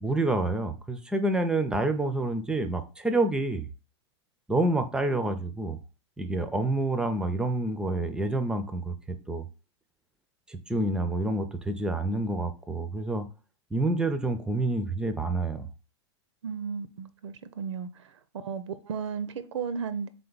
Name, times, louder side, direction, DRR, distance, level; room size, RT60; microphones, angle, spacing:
voice 1, 0.0-3.7 4.5-5.8 6.2-9.5 10.5-13.2 13.7-15.7, right 2 dB, 5° right, 0.4 m, -28 dB
voice 2, 16.4-17.9 18.4-20.1, right 6 dB, 85° right, 0.5 m, -34 dB
3.7 x 3.4 x 3.9 m
hypercardioid pair, 135°, 15 cm